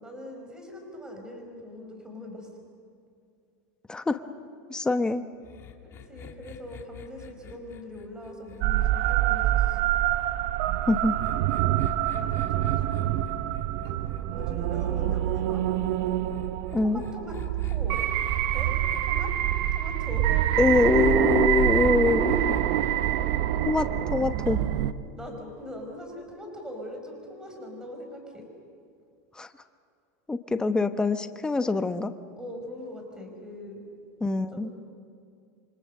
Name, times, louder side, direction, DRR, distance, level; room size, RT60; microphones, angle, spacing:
voice 1, 0.0-2.5 5.8-9.8 12.1-12.7 14.3-15.6 16.8-17.3 17.6-18.0 18.5-18.7 19.0-19.3 19.7-20.3 25.2-28.4 32.4-33.8 34.5-34.7, left 1 dB, 10° right, 3 dB, 5.1 m, -41 dB
voice 2, 3.9-4.2 4.7-5.2 10.9-11.1 16.7-17.0 20.6-22.5 23.6-24.6 29.4-29.5 30.3-32.1 34.2-34.7, left 3 dB, 10° left, 9 dB, 0.9 m, -24 dB
sound 1, 5.4-9.9 10.8-14.9 16.3-19.0 20.6-23.4, left 9 dB, 30° left, 2.0 m, -43 dB
sound 2, 8.6-24.9, right 13 dB, 60° right, 1.0 m, -26 dB
28.0 x 24.5 x 6.6 m, 2.4 s
supercardioid pair, 145°, 9 cm